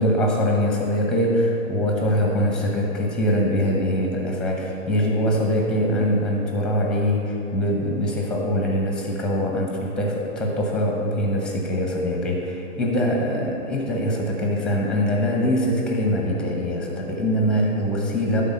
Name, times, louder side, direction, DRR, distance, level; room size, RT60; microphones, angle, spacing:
voice 1, 0.0-18.4, equal, ahead, 0 dB, 0.8 m, -23 dB
11.5 x 3.9 x 5.6 m, 2.7 s
hypercardioid pair, 140°, 42 cm